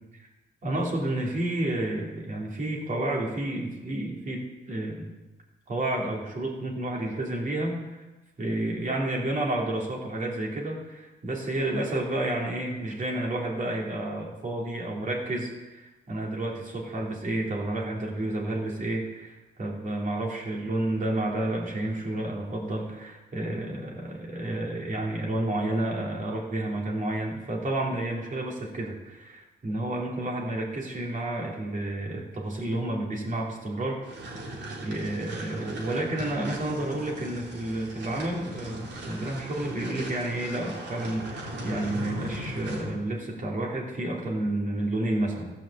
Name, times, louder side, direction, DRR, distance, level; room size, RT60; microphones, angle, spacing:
voice 1, 0.6-5.1 5.7-8.0 8.4-34.0 34.8-45.5, right 1 dB, 40° right, -2 dB, 2.9 m, -30 dB
sound 1, 34.0-43.0, right 1 dB, 65° right, 3.0 m, -38 dB
14.0 x 5.8 x 7.2 m, 1.1 s
cardioid pair, 105°, 19 cm